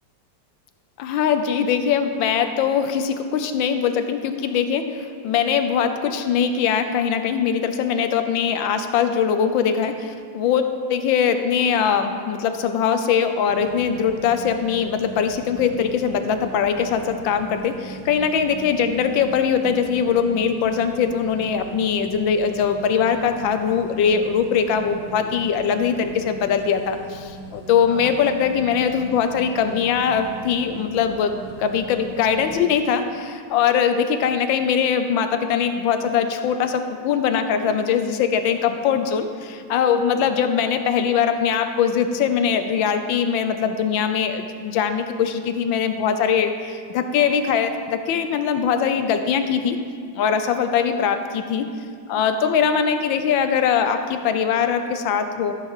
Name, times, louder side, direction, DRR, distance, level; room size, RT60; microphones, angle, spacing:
voice 1, 1.0-31.3 31.6-49.8 50.1-51.7 52.1-55.5, left 7 dB, 80° left, 8 dB, 1.5 m, -21 dB
sound 1, 13.5-32.7, right 3 dB, 70° right, 1.6 m, -40 dB
13.5 x 7.5 x 4.9 m, 2.3 s
omnidirectional pair, 2.1 m